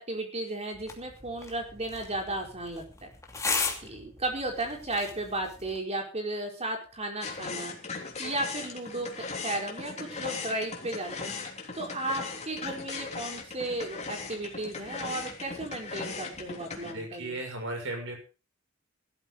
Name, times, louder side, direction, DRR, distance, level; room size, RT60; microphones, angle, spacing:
voice 1, 0.0-3.1 3.8-11.3 11.7-17.4, right 1 dB, 30° right, 2 dB, 4.8 m, -34 dB
sound 1, 0.7-5.8, left 4 dB, 15° left, 2.7 m, -36 dB
sound 2, 7.2-16.9, left 4 dB, 35° left, 3.3 m, -38 dB
voice 2, 16.8-18.2, right 2 dB, 65° right, 3 dB, 7.0 m, -36 dB
17.0 x 13.0 x 4.0 m, 0.33 s
head